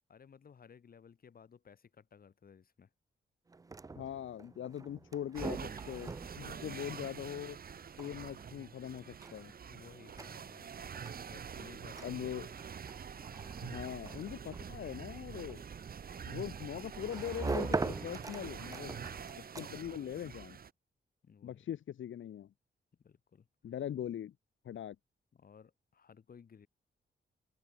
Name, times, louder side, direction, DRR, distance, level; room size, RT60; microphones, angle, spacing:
voice 1, 0.1-2.9 6.2-6.8 9.7-10.7 11.3-12.7 18.9-19.3 21.2-21.7 23.0-23.5 25.3-26.7, left 6 dB, 50° left, 2.5 m, -58 dB
sound 1, 3.5-20.0, right 3 dB, 20° right, 0.5 m, -43 dB
voice 2, 3.9-7.6 8.0-9.5 12.0-12.5 13.6-15.6 16.3-18.9 19.6-20.6 21.4-22.5 23.6-24.3 24.6-25.0, left 10 dB, 85° left, 1.1 m, -41 dB
sound 2, 5.4-20.7, right 7 dB, 50° right, 1.5 m, -46 dB
wide cardioid pair, 160°, 19 cm